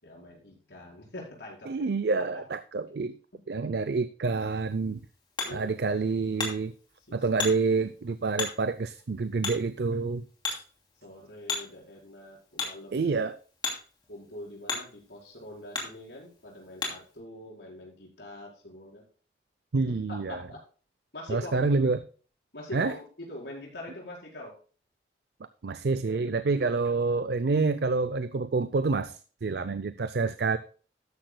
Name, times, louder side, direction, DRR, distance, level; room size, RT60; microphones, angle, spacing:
voice 1, 0.0-1.8 2.3-2.4 3.3-3.4 5.4-5.7 7.0-7.2 11.0-13.1 14.1-19.0 19.9-20.6 21.1-21.8 22.5-24.6, left 1 dB, 80° left, -2 dB, 4.7 m, -44 dB
voice 2, 1.7-3.2 3.5-5.0 5.5-6.7 7.1-10.2 12.9-13.3 19.7-20.4 21.3-22.0 22.7-22.9 25.6-30.6, right 4 dB, 65° right, 13 dB, 0.5 m, -27 dB
Hammer, 4.5-17.2, left 4 dB, 25° left, 2.7 m, -39 dB
13.0 x 10.0 x 2.2 m, 0.39 s
head